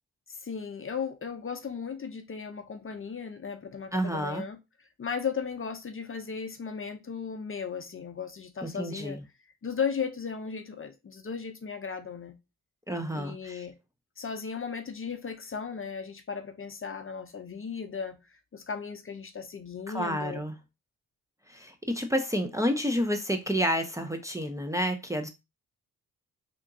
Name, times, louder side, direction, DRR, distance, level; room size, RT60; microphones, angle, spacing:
voice 1, 0.3-4.6 5.0-9.2 9.6-12.3 13.1-13.7 14.2-18.2 18.5-20.4, left 6 dB, 35° left, 0.6 m, -36 dB
voice 2, 3.9-4.5 8.6-9.2 12.9-13.7 19.9-20.6 21.5-25.3, equal, 10° right, 0.6 m, -30 dB
3.4 x 2.9 x 2.6 m
cardioid pair, 60°, 37 cm